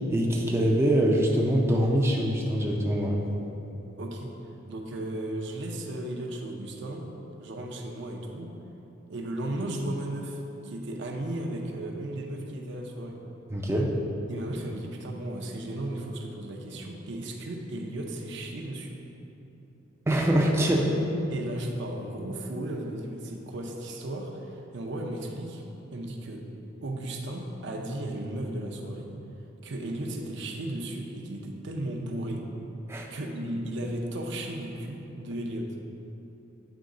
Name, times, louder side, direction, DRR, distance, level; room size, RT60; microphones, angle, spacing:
voice 1, 0.1-3.2 13.5-13.9 20.1-21.0 32.9-33.2, right 1 dB, 15° right, -2 dB, 0.4 m, -24 dB
voice 2, 4.0-4.3 4.7-7.1 7.4-8.5 9.1-13.2 14.3-19.0 21.3-25.6 25.9-26.4 26.8-29.1 29.6-32.5 33.1-35.7, right 1 dB, 60° right, 1 dB, 0.6 m, -35 dB
9.0 x 3.1 x 3.7 m, 3.0 s
head